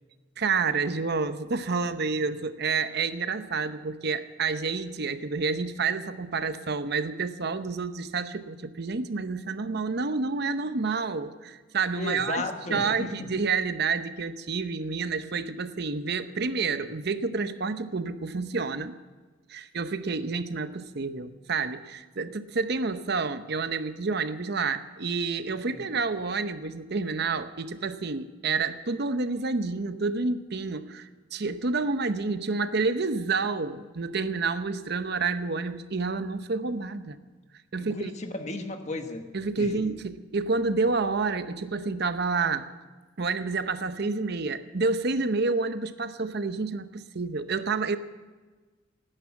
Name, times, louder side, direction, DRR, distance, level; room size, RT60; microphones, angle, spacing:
voice 1, 0.4-12.4 12.7-19.0 19.5-37.2 37.7-38.1 39.3-42.7 43.2-48.0, right 4 dB, 55° right, 11 dB, 0.8 m, -29 dB
voice 2, 11.9-13.3 25.7-25.9 37.8-39.3 39.6-39.9, left 2 dB, 35° left, 6 dB, 1.2 m, -35 dB
17.5 x 10.0 x 7.3 m, 1.3 s
head